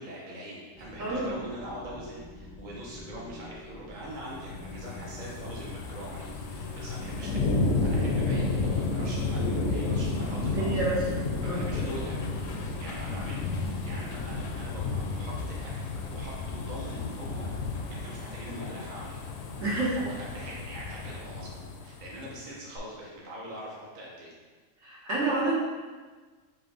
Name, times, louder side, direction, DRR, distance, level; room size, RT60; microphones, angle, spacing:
voice 1, 0.0-7.5 7.8-15.7 16.0-17.5 17.9-19.2 19.9-24.3, equal, 45° right, -5 dB, 0.7 m, -43 dB
sound 1, 0.7-14.9, left 1 dB, 20° right, 0.3 m, -45 dB
voice 2, 1.0-1.3 10.5-11.0 11.4-11.6 19.6-20.0 24.8-25.5, right 2 dB, 75° right, -7 dB, 1.7 m, -28 dB
sound 2, 4.2-22.3 22.8-22.9, left 3 dB, 75° left, 0.9 m, -32 dB
5.9 x 2.3 x 3.9 m, 1.4 s
omnidirectional pair, 1.4 m